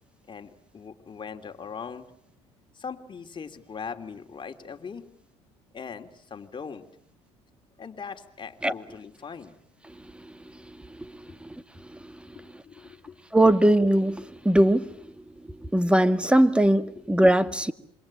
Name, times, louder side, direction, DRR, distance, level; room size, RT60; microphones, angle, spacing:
voice 1, 0.3-2.1 2.7-5.1 5.7-6.9 7.8-9.6 11.3-11.4 12.3-13.2, left 6 dB, 35° left, 6 dB, 3.0 m, -40 dB
voice 2, 11.4-12.1 13.3-14.9 15.6-17.7, right 1 dB, 5° right, 12 dB, 1.9 m, -21 dB
27.0 x 24.5 x 8.8 m, 0.70 s
supercardioid pair, 70°, 14 cm